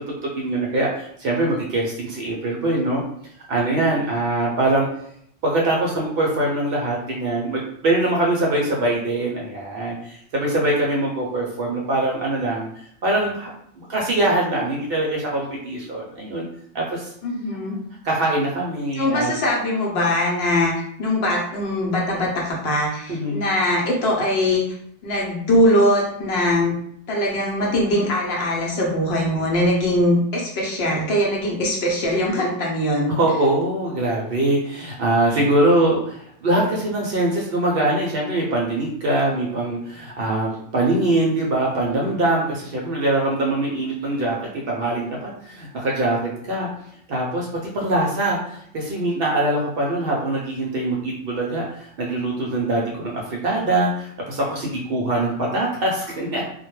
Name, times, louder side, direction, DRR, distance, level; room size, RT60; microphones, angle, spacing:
voice 1, 0.2-3.0 3.5-4.9 5.4-12.7 13.0-16.5 16.7-17.1 18.0-19.3 23.1-23.4 33.1-46.7 47.1-47.5 47.7-56.4, right 2 dB, 60° right, -2 dB, 0.7 m, -23 dB
voice 2, 17.2-17.8 19.0-20.7 21.0-24.6 25.0-26.7 27.1-33.1, left 1 dB, 60° left, -2 dB, 0.8 m, -21 dB
2.2 x 2.1 x 3.0 m, 0.68 s
omnidirectional pair, 1.3 m